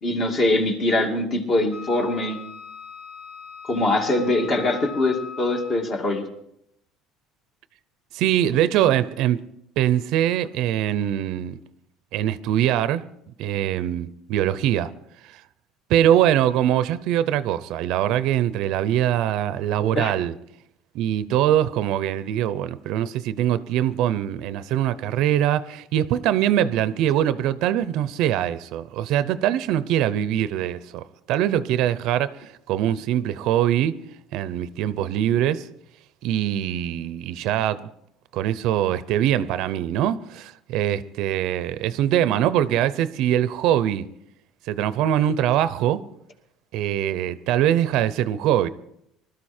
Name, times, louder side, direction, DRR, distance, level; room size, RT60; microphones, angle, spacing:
voice 1, 0.0-2.4 3.6-6.2 19.9-20.1, left 2 dB, 35° left, 2.5 m, -23 dB
Wind instrument woodwind instrument, 1.7-5.9, left 6 dB, 65° left, 5.1 m, -40 dB
voice 2, 8.1-9.4 9.8-11.6 12.1-13.1 13.4-14.9 15.3-15.4 15.9-20.3 20.9-34.0 34.3-35.7 36.2-37.9 38.3-44.1 44.7-46.0 46.7-48.7, right 11 dB, 65° right, 0.7 m, -23 dB
20.0 x 13.0 x 4.4 m
cardioid pair, 140°, 0 cm